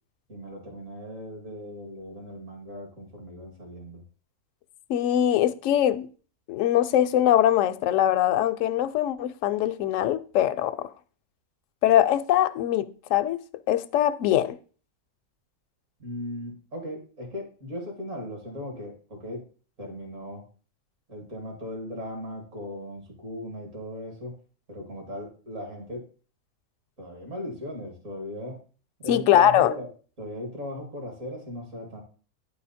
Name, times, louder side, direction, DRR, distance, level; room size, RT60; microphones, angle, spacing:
voice 1, 0.3-4.0 16.0-19.4 19.8-20.5 21.1-24.4 24.7-26.0 27.0-28.6 29.0-29.9 30.2-32.0, left 1 dB, 55° right, 2.9 m, -38 dB
voice 2, 4.9-6.1 6.5-10.9 11.8-13.4 13.7-14.6 29.1-29.7, left 11 dB, 70° left, 0.9 m, -22 dB
9.9 x 5.0 x 4.2 m
omnidirectional pair, 1.6 m